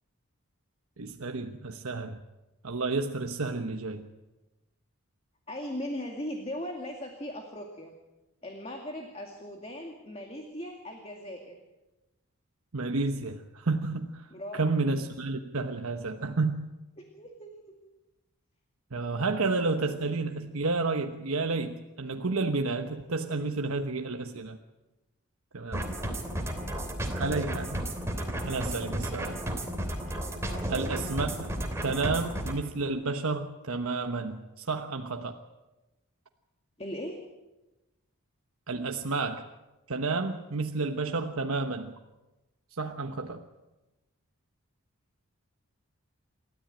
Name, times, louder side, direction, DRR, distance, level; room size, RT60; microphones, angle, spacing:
voice 1, 1.0-2.2 2.6-4.0 12.7-16.7 18.9-24.6 25.5-25.9 27.1-27.8 28.4-29.4 30.7-31.5 31.8-35.4 38.7-39.4 39.9-41.9 42.7-43.4, right 3 dB, 75° right, 5 dB, 1.1 m, -31 dB
voice 2, 5.5-7.9 8.4-11.6 14.3-14.6 17.0-17.8 30.5-30.9 36.8-37.2, left 1 dB, 25° left, 2 dB, 2.3 m, -39 dB
sound 1, 25.7-32.6, right 1 dB, 10° right, 3.1 m, -33 dB
28.0 x 13.5 x 9.0 m, 1.1 s
head